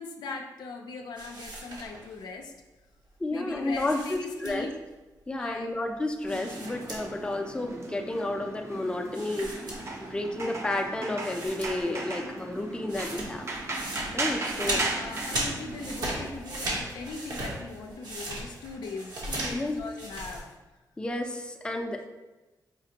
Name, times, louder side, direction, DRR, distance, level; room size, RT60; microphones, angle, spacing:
voice 1, 0.0-2.5 3.3-4.7 5.4-5.7 14.6-20.5, left 3 dB, 90° left, 3 dB, 0.4 m, -40 dB
sound 1, 1.2-2.2 3.7-4.9 6.3-7.3 7.6-7.7 9.1-10.3 10.8-10.9 11.2-12.0 12.3-20.4, right 1 dB, 70° right, 1.0 m, -37 dB
voice 2, 3.2-4.7 5.3-9.5 10.1-13.5 14.1-14.8 19.5-19.8 21.0-22.1, left 2 dB, 15° left, 3 dB, 0.4 m, -31 dB
sound 2, 6.2-16.3, right 2 dB, 40° right, 0.5 m, -37 dB
5.1 x 2.4 x 2.8 m, 1.1 s
cardioid pair, 90°, 7 cm